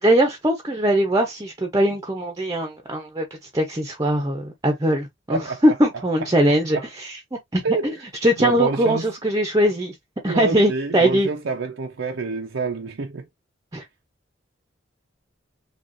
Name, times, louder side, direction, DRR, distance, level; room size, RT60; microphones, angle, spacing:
voice 1, 0.0-3.2 3.5-7.6 8.2-9.9 10.2-11.3 13.7-13.8, right 1 dB, 20° right, 0.7 m, -21 dB
voice 2, 5.3-5.6 5.9-6.0 6.7-6.8 7.6-8.0 8.4-9.1 10.3-13.3, right 4 dB, 75° right, 0.6 m, -27 dB
6.2 x 2.4 x 2.6 m
head